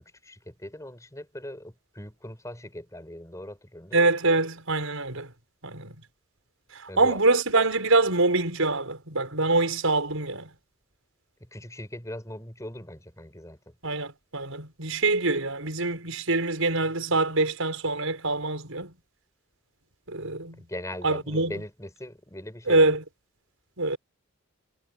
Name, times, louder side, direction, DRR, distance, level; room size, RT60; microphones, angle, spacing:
voice 1, 0.0-4.1 6.9-7.2 11.4-13.7 20.6-23.0, left 1 dB, 15° left, 6.6 m, -40 dB
voice 2, 3.9-5.3 5.6-5.9 6.7-10.5 13.8-18.9 20.1-20.6 21.0-21.5 22.7-23.0 23.8-24.0, right 3 dB, 90° right, 5.9 m, -25 dB
head